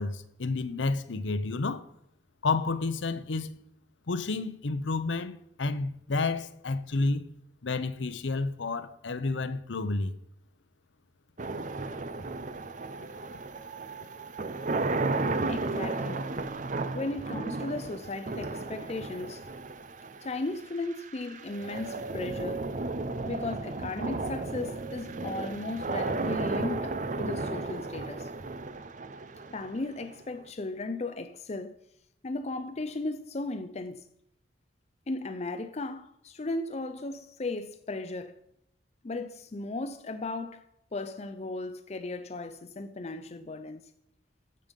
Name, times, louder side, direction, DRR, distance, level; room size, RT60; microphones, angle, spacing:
voice 1, 0.0-1.8 2.4-3.6 4.1-7.3 7.6-10.1, left 3 dB, 85° left, 0.7 m, -30 dB
sound 1, 11.4-30.4, right 3 dB, 45° right, 0.6 m, -34 dB
voice 2, 15.5-16.3 16.9-19.5 20.2-22.7 23.2-28.3 29.5-31.8 32.2-34.0 35.1-38.4 39.0-40.6 40.9-43.8, left 2 dB, 35° left, 0.5 m, -36 dB
14.0 x 5.3 x 5.3 m
head